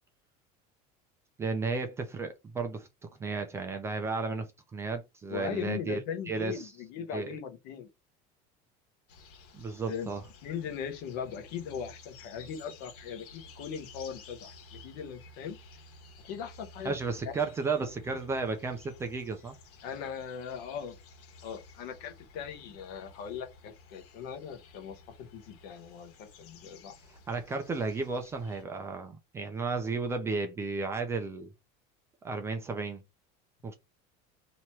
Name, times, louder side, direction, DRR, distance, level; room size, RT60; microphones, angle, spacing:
voice 1, 1.4-2.9 3.2-6.0 6.3-6.7 7.1-7.3 9.5-10.2 16.8-19.6 27.3-31.5 32.2-33.0 33.6-33.7, right 4 dB, 15° right, 0.4 m, -33 dB
voice 2, 5.3-7.9 9.9-10.1 10.4-15.6 16.2-16.9 17.2-17.3 19.8-21.0 21.4-27.0, left 7 dB, 55° left, 1.0 m, -39 dB
sound 1, 9.1-28.6, left 3 dB, 75° left, 1.4 m, -53 dB
3.0 x 2.9 x 4.5 m
cardioid pair, 180°, 19 cm